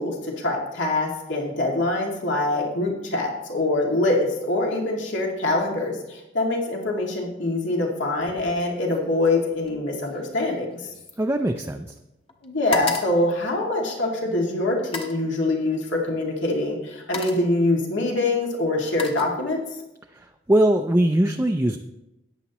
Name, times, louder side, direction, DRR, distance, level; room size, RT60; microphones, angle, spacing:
voice 1, 0.0-10.9 12.4-19.6, left 2 dB, 80° left, -1 dB, 2.3 m, -24 dB
sound 1, 8.2-8.6 8.9-12.0 12.3-14.2 14.8-15.3 16.3-16.5 16.9-17.6 18.4-19.8 20.2-20.6, left 4 dB, 30° left, 1.1 m, -36 dB
voice 2, 11.2-11.9 20.1-21.8, right 1 dB, 15° right, 3 dB, 0.4 m, -21 dB
14.0 x 9.8 x 3.0 m, 0.94 s
head